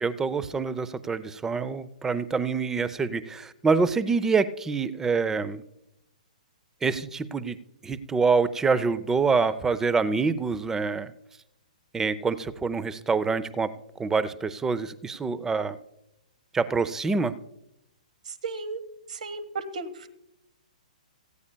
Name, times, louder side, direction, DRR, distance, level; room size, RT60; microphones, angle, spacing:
voice 1, 0.0-5.6 6.8-7.6 7.8-11.1 11.9-13.7 14.0-15.8 16.5-17.4, right 4 dB, 10° right, 17 dB, 0.6 m, -26 dB
voice 2, 18.4-18.8 19.1-20.1, right 3 dB, 70° right, 12 dB, 1.3 m, -34 dB
18.0 x 14.5 x 2.2 m, 0.82 s
hypercardioid pair, 125°, 4 cm